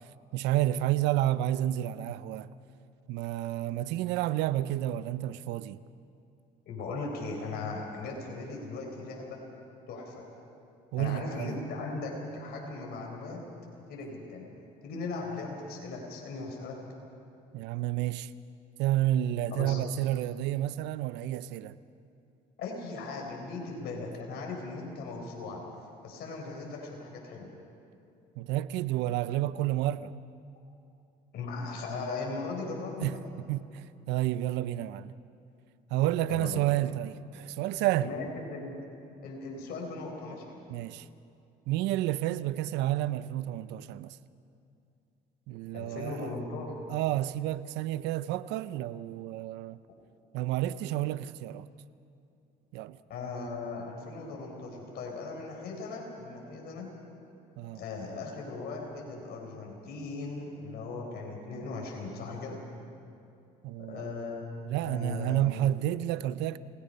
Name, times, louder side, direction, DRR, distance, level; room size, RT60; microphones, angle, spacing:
voice 1, 0.3-2.5 3.1-5.8 10.9-11.5 17.5-18.3 18.8-21.7 28.4-30.2 33.0-33.2 33.5-35.1 35.9-38.1 40.7-41.1 41.7-44.2 45.5-46.2 46.9-49.8 50.3-51.7 52.7-53.0 57.6-57.8 63.6-64.1 64.6-66.6, right 14 dB, 80° right, 0.7 m, -30 dB
voice 2, 6.7-9.4 9.9-10.3 11.0-13.4 13.9-14.5 14.8-16.8 19.5-19.8 22.6-25.6 26.0-27.5 31.3-33.2 36.3-36.7 38.0-38.8 39.2-40.6 45.7-46.8 53.1-56.9 57.7-62.6 63.8-65.5, left 3 dB, 65° left, 4.2 m, -38 dB
28.5 x 18.5 x 5.5 m
supercardioid pair, 80°, 18 cm